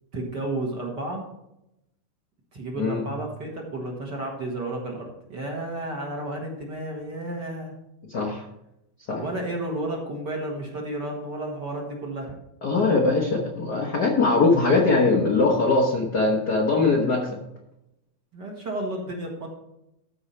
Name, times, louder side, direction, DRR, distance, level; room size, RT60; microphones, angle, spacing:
voice 1, 0.1-1.2 2.5-7.7 9.2-12.3 18.3-19.5, right 1 dB, 40° right, -1 dB, 1.8 m, -32 dB
voice 2, 2.7-3.1 8.1-8.5 9.1-9.2 12.6-17.4, left 3 dB, 70° left, 0 dB, 0.9 m, -21 dB
14.0 x 5.0 x 4.3 m, 0.85 s
omnidirectional pair, 3.5 m